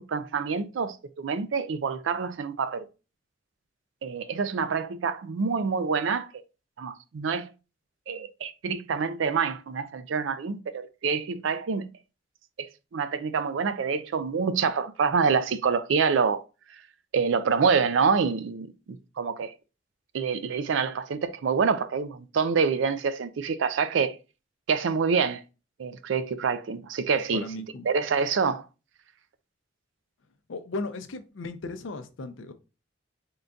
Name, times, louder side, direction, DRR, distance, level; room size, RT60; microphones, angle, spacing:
voice 1, 0.1-2.9 4.0-6.3 6.8-7.5 8.1-11.9 12.6-16.4 17.1-19.5 20.1-24.2 24.7-25.4 25.8-27.4 27.8-28.6, right 5 dB, 75° right, 0.4 m, -26 dB
voice 2, 27.3-27.9 30.5-32.5, left 2 dB, 80° left, 0.6 m, -36 dB
3.8 x 2.3 x 3.7 m
head